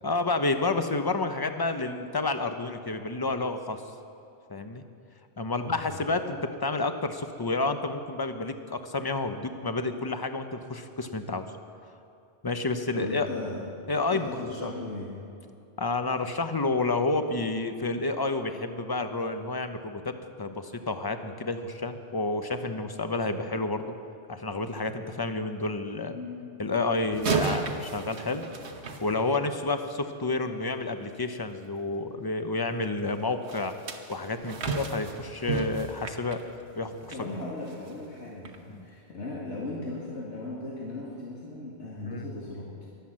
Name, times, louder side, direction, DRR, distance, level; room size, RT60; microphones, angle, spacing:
voice 1, 0.0-3.8 4.5-4.8 5.4-11.5 12.4-13.3 13.9-14.3 14.6-14.7 15.8-23.9 24.3-26.2 26.6-28.4 29.0-33.7 34.1-36.4 36.8-37.3 38.7-38.8 42.0-42.2, left 3 dB, 25° left, 8 dB, 0.7 m, -30 dB
voice 2, 5.6-6.0 12.9-13.7 14.1-15.1 26.1-26.5 37.1-42.7, left 2 dB, 90° left, -5 dB, 2.3 m, -37 dB
sound 1, 27.1-29.7 33.5-37.3 37.7-37.9 38.5-38.6, right 4 dB, 75° right, 1.3 m, -33 dB
22.0 x 7.9 x 7.5 m, 2.6 s
omnidirectional pair, 1.1 m